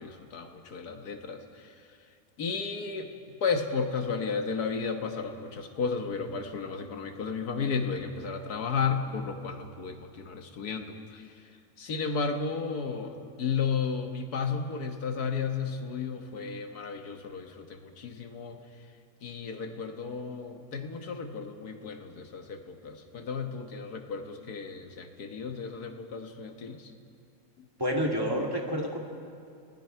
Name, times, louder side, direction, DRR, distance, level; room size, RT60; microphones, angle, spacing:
voice 1, 0.0-1.8 2.4-3.1 3.4-11.3 11.8-18.6 19.2-26.9, left 5 dB, 85° left, 5 dB, 1.9 m, -33 dB
voice 2, 27.8-29.0, equal, 15° right, 0 dB, 2.2 m, -28 dB
29.5 x 19.5 x 4.6 m, 2.4 s
omnidirectional pair, 1.6 m